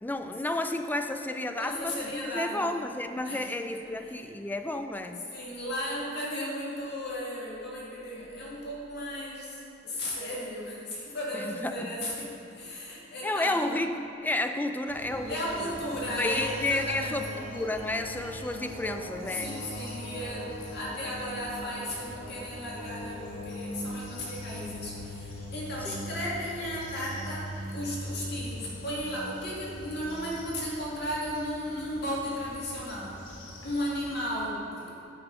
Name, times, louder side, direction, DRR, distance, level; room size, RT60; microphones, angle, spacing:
voice 1, 0.0-5.3 11.3-12.0 13.2-15.7 16.2-19.5 25.8-26.0, left 2 dB, 10° left, 7 dB, 0.3 m, -31 dB
voice 2, 1.6-2.7 3.2-3.4 3.7-3.9 5.3-13.7 15.3-17.4 19.4-33.3 33.6-35.0, equal, 60° left, -6 dB, 2.1 m, -35 dB
sound 1, 14.9-34.2, equal, 85° left, 1.9 m, -41 dB
9.3 x 5.5 x 5.0 m, 2.8 s
head